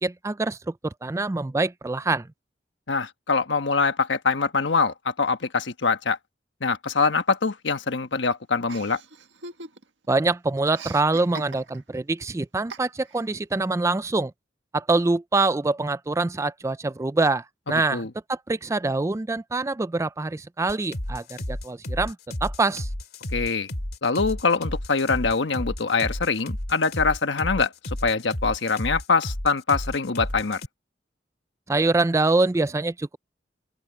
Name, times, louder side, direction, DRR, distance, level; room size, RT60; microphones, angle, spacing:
voice 1, 0.0-2.3 10.1-14.3 14.7-18.0 18.3-22.2 22.4-22.9 31.7-33.2, right 3 dB, 15° right, 0.3 m, -25 dB
voice 2, 2.9-6.2 6.6-9.0 17.9-18.1 23.3-23.7 24.0-27.7 28.0-30.6, left 4 dB, 85° left, 1.2 m, -24 dB
Chuckle chortle, 8.7-10.1 10.3-12.0 12.7-13.3, right 3 dB, 90° right, 1.8 m, -41 dB
sound 1, 20.7-30.7, left 1 dB, 55° left, 2.5 m, -32 dB
open air
head